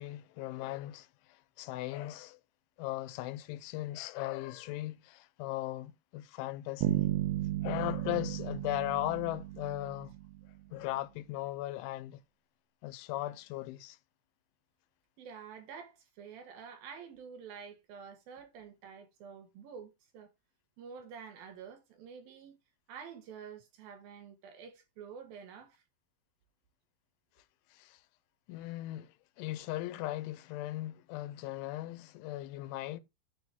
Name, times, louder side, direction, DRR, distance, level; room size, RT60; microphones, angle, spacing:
voice 1, 0.0-2.4 2.8-7.1 7.6-10.1 10.7-12.2 12.8-14.0 27.7-28.0 28.5-33.0, left 16 dB, 85° left, 3.1 m, -38 dB
Bass guitar, 6.8-10.6, right 15 dB, 85° right, 2.2 m, -34 dB
voice 2, 15.2-20.3 20.8-22.6 22.9-25.8, right 6 dB, 60° right, 3.0 m, -49 dB
9.9 x 4.2 x 5.9 m
omnidirectional pair, 5.4 m